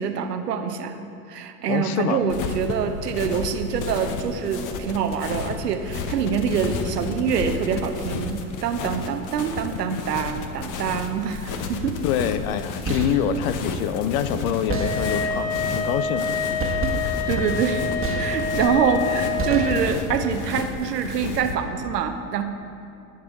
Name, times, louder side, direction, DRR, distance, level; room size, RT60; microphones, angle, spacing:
voice 1, 0.0-12.0 16.9-22.4, right 7 dB, 85° right, 7 dB, 0.8 m, -25 dB
voice 2, 1.7-2.2 12.0-16.8, left 8 dB, 65° left, 12 dB, 0.7 m, -26 dB
sound 1, 2.3-21.5, left 5 dB, 40° left, 1.0 m, -32 dB
sound 2, 12.6-13.3 14.7-15.4 16.6-18.8 19.4-20.2, right 4 dB, 25° right, 1.5 m, -29 dB
sound 3, 14.7-19.8, left 5 dB, 15° left, 1.0 m, -27 dB
16.5 x 5.5 x 4.0 m, 2.6 s
hypercardioid pair, 80°, 47 cm